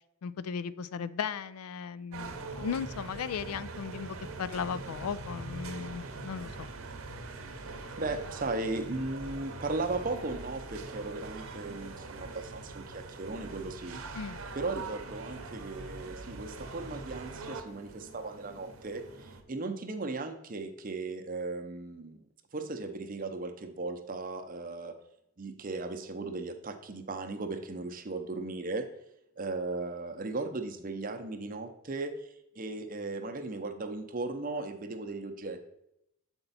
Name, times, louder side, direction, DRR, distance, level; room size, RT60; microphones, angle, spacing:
voice 1, 0.2-6.7 14.1-14.4, left 6 dB, 85° left, 14 dB, 0.4 m, -36 dB
sound 1, 2.1-19.4, right 3 dB, 75° right, 0.8 m, -43 dB
voice 2, 8.0-14.0 14.5-22.2 22.5-25.0 25.4-28.9 29.4-32.1 32.6-35.7, right 3 dB, 40° right, 7 dB, 0.6 m, -37 dB
7.9 x 4.4 x 4.0 m, 0.81 s
head